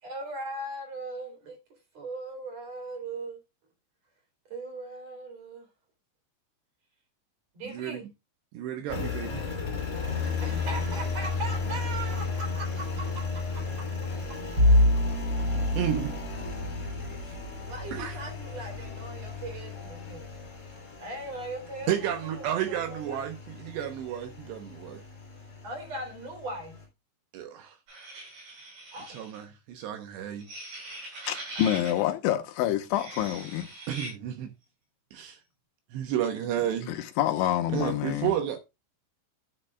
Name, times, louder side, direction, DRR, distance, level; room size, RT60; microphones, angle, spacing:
voice 1, 0.0-1.6 1.9-3.4 4.5-5.7 7.5-8.0 10.4-12.8 15.0-15.2 17.7-20.2 21.0-23.2 25.6-26.8 28.9-29.2 31.6-31.7, right 2 dB, 35° right, 4.0 m, -39 dB
voice 2, 7.6-8.0 8.5-9.5 15.8-16.2 17.3-17.4 17.9-18.2 21.9-25.0 27.3-27.8 29.1-30.5 33.9-34.5 35.1-35.4 35.9-37.0 37.7-38.6, right 10 dB, 75° right, 2.8 m, -32 dB
Engine, 8.9-26.8, left 4 dB, 20° left, 2.9 m, -35 dB
Bowed string instrument, 14.6-19.7, left 1 dB, 20° right, 4.7 m, -27 dB
sound 1, 27.9-29.4 30.4-32.0 32.8-34.1, right 2 dB, 60° right, 8.7 m, -41 dB
voice 3, 31.3-33.7 36.9-38.3, left 12 dB, 80° left, 3.2 m, -27 dB
11.5 x 9.9 x 2.4 m
omnidirectional pair, 5.6 m